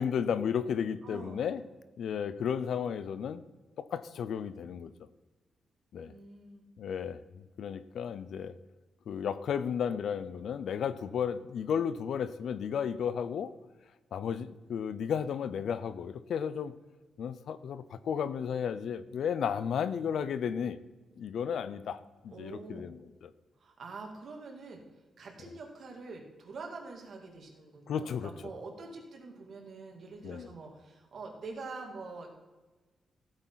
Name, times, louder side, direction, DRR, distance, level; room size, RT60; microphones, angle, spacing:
voice 1, 0.0-1.6 2.0-3.4 3.8-4.9 5.9-6.1 6.8-8.5 9.1-13.5 14.1-16.7 17.2-20.8 21.2-23.3 27.9-28.3 30.2-30.5, left 7 dB, 75° left, 14 dB, 0.6 m, -33 dB
voice 2, 1.0-1.5 6.0-6.7 22.3-22.9 23.6-24.8 25.2-32.3, right 3 dB, 55° right, 1 dB, 2.6 m, -45 dB
15.0 x 8.9 x 4.1 m, 1.3 s
cardioid pair, 115°, 0 cm